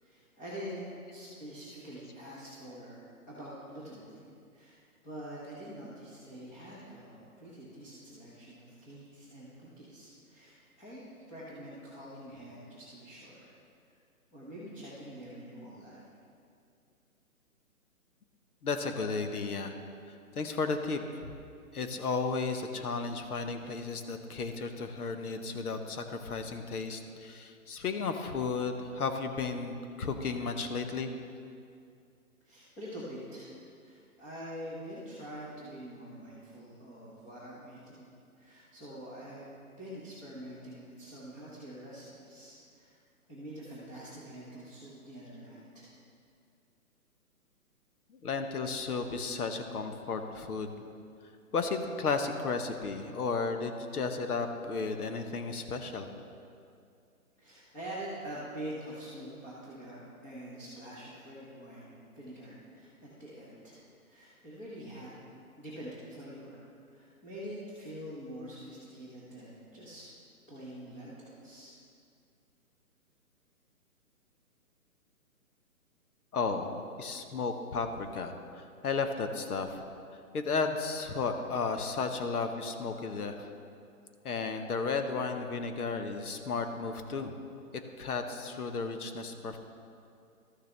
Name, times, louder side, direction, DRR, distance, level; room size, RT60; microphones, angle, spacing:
voice 1, 0.0-3.0 3.3-4.3 4.5-13.5 14.3-16.1 32.4-38.1 38.4-43.0 43.3-45.9 57.4-65.1 65.6-66.6 66.9-70.1 70.5-71.7, equal, 10° left, -10 dB, 0.7 m, -45 dB
voice 2, 18.6-19.7 20.3-21.3 21.7-31.1 48.1-50.8 51.5-56.1 76.3-79.8 80.3-83.5 84.2-87.4 88.0-89.6, left 4 dB, 80° left, 6 dB, 1.1 m, -34 dB
13.0 x 6.7 x 3.3 m, 2.4 s
hypercardioid pair, 155°, 45 cm